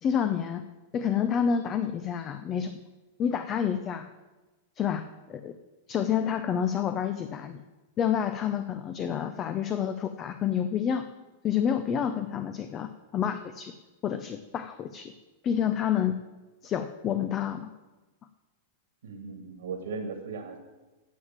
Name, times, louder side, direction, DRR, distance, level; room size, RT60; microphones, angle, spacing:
voice 1, 0.0-0.6 0.9-2.8 3.2-4.1 4.8-5.0 5.3-5.6 5.9-7.6 8.0-11.1 11.4-13.7 14.0-15.1 15.4-16.2 16.6-17.7, left 8 dB, 30° left, 10 dB, 0.7 m, -28 dB
voice 2, 19.0-20.6, right 4 dB, 80° right, 3 dB, 2.0 m, -37 dB
9.6 x 7.4 x 7.4 m, 1.2 s
hypercardioid pair, 120°, 0 cm